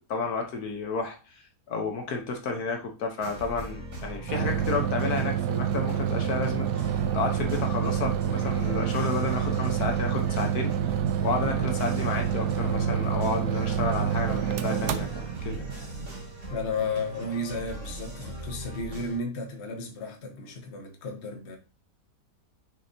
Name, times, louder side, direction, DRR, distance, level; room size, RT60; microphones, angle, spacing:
voice 1, 0.1-1.4 1.7-6.7 7.1-10.7 11.2-15.7, left 4 dB, 70° left, 1.5 m, -31 dB
sound 1, 3.2-19.2, right 1 dB, 45° right, 2.8 m, -40 dB
sound 2, 4.3-16.8, right 9 dB, 75° right, 1.2 m, -28 dB
voice 2, 16.5-21.6, left 3 dB, 45° left, 1.3 m, -33 dB
6.3 x 6.3 x 2.8 m
omnidirectional pair, 1.7 m